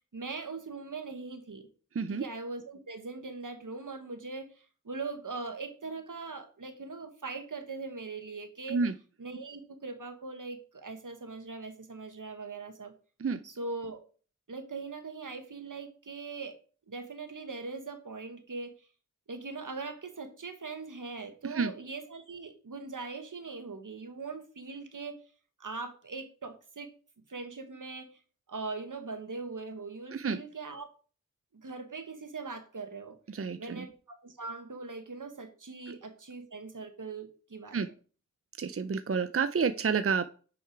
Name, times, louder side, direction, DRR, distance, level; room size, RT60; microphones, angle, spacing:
voice 1, 0.1-1.7 2.1-8.8 9.2-12.9 13.4-14.0 14.5-16.6 16.9-18.9 19.3-25.2 25.6-26.9 27.3-28.2 28.5-30.9 31.5-33.2 33.6-37.8, right 4 dB, 75° right, 7 dB, 1.4 m, -41 dB
voice 2, 33.3-33.9 37.7-37.9 38.6-40.3, right 5 dB, 45° right, 10 dB, 0.5 m, -29 dB
6.7 x 6.3 x 4.6 m, 0.38 s
wide cardioid pair, 50°, 31 cm